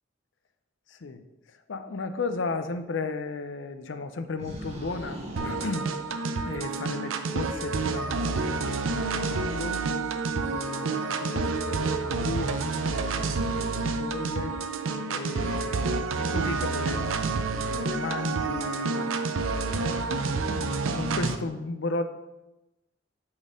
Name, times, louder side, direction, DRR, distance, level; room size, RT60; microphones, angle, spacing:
voice 1, 1.7-5.9 6.4-9.8 10.3-14.6 15.1-19.1 19.7-20.6 20.9-22.0, left 3 dB, 65° left, 9 dB, 0.5 m, -35 dB
sound 1, 4.4-6.8, right 1 dB, 35° right, 1.0 m, -41 dB
sound 2, 5.4-21.4, right 4 dB, 80° right, 0.5 m, -29 dB
8.6 x 4.2 x 3.7 m, 0.99 s
head